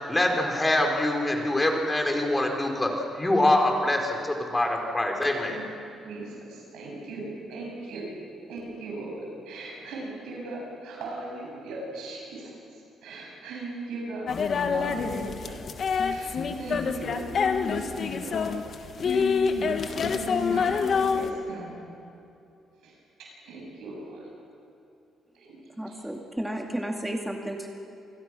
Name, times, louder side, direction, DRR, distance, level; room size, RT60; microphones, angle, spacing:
voice 1, 0.1-2.9 3.1-5.6, left 1 dB, 15° left, 2 dB, 3.9 m, -24 dB
voice 2, 5.5-8.1 8.5-14.3 14.7-15.6 16.1-17.4 17.6-18.5 19.0-21.8 22.8-24.3 25.3-25.6 25.9-26.0, right 2 dB, 90° right, -2 dB, 7.6 m, -39 dB
sound 1, 14.3-21.3, left 5 dB, 55° left, 1.5 m, -27 dB
voice 3, 25.8-27.7, right 1 dB, 5° right, 1 dB, 2.3 m, -32 dB
27.5 x 20.0 x 6.1 m, 2.7 s
cardioid pair, 90°, 0 cm